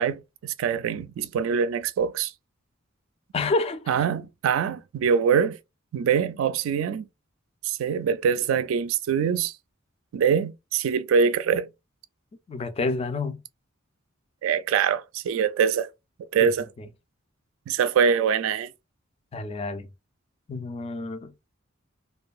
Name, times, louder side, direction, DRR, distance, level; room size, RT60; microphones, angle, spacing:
voice 1, 0.0-2.3 3.9-5.6 5.9-7.1 7.6-9.5 10.1-11.7 14.4-15.9 16.2-16.7 17.7-18.7, right 7 dB, 70° right, 0.3 m, -24 dB
voice 2, 3.3-3.9 12.5-13.4 16.4-16.5 16.8-16.9 19.3-19.9 20.5-21.3, left 3 dB, 30° left, 0.3 m, -28 dB
2.6 x 2.2 x 2.3 m
head